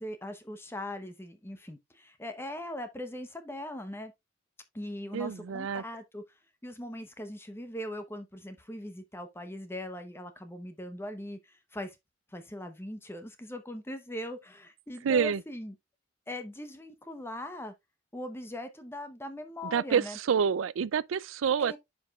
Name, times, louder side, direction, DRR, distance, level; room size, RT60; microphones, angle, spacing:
voice 1, 0.0-4.1 4.7-6.2 6.6-12.0 12.3-15.8 16.3-17.7 18.1-20.2 21.6-21.8, left 1 dB, 10° left, 0.8 m, -40 dB
voice 2, 5.1-5.8 15.0-15.4 19.7-20.0 20.3-21.8, right 7 dB, 90° right, 0.4 m, -27 dB
10.0 x 5.1 x 2.3 m
head